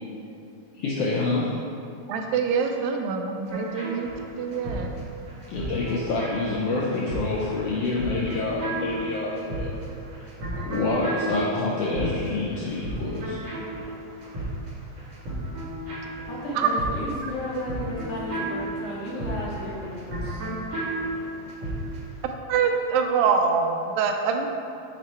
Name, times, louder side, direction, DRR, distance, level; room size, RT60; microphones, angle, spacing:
voice 1, 0.8-1.6 5.5-9.8 10.2-10.3 10.6-13.4, left 3 dB, 80° left, -4 dB, 1.4 m, -27 dB
voice 2, 2.1-4.9 16.6-16.7 22.5-24.5, right 6 dB, 85° right, 4 dB, 1.9 m, -25 dB
sound 1, 3.5-22.1, right 1 dB, 60° right, 2.6 m, -33 dB
voice 3, 16.3-20.4, left 1 dB, 65° left, -5 dB, 1.7 m, -34 dB
8.3 x 2.9 x 4.2 m, 2.6 s
omnidirectional pair, 3.3 m